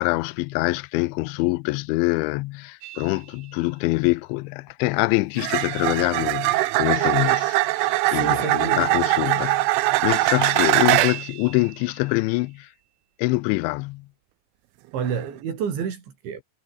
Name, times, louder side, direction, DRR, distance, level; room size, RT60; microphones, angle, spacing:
voice 1, 0.0-12.7 13.2-14.1, left 22 dB, 85° left, 2.7 m, -25 dB
sound 1, 2.8-3.0 5.4-11.3 15.0-15.3, right 19 dB, 75° right, 3.1 m, -22 dB
voice 2, 8.1-8.9 9.3-9.4 14.9-16.4, right 7 dB, 60° right, 6.3 m, -29 dB
omnidirectional pair, 6.0 m